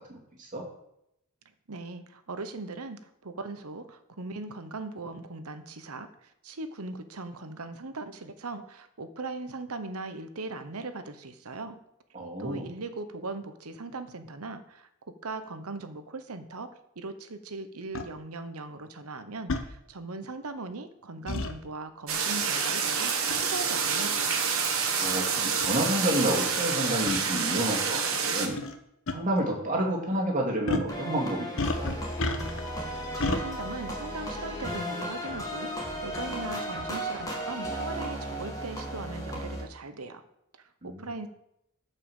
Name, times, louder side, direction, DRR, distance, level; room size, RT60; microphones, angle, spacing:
voice 1, 0.1-0.6 12.1-12.7 25.0-28.6 29.1-32.0 40.8-41.0, right 1 dB, 35° right, 0 dB, 2.5 m, -30 dB
voice 2, 1.7-11.8 12.4-24.4 32.9-35.7 36.0-40.2 40.6-41.3, right 3 dB, 80° right, 10 dB, 1.0 m, -39 dB
sound 1, 17.9-18.1 19.5-19.7 21.3-21.5 23.3-23.5 24.3-24.4 25.2-25.3 25.6-25.7 27.1-27.2 28.5-28.8 29.1-29.2 30.7-30.9 31.6-32.7 33.2-33.4, left 2 dB, 65° left, 1.0 m, -30 dB
sound 2, 22.1-28.5, right 6 dB, 65° right, 1.6 m, -28 dB
sound 3, 30.9-39.6, equal, 15° left, 2.4 m, -35 dB
11.5 x 5.6 x 7.1 m, 0.81 s
head